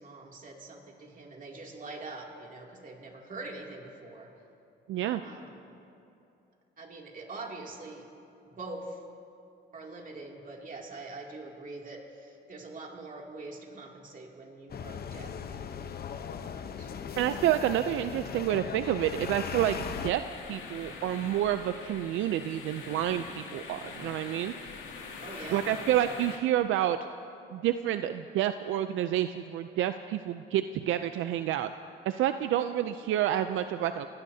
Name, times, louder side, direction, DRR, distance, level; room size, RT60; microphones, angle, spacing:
voice 1, 0.0-4.3 5.2-5.7 6.8-8.1 8.4-9.0 9.7-16.9 25.2-25.7, right 2 dB, 40° right, 0 dB, 2.7 m, -44 dB
voice 2, 4.9-5.2 17.2-20.2 20.5-24.5 25.5-27.0 27.5-31.7 32.1-34.1, right 12 dB, 80° right, 10 dB, 0.5 m, -29 dB
sound 1, 14.7-20.1, left 7 dB, 50° left, 0.9 m, -38 dB
sound 2, 19.7-26.4, left 5 dB, 85° left, 2.4 m, -43 dB
29.5 x 17.5 x 2.8 m, 2.7 s
cardioid pair, 90°, 20 cm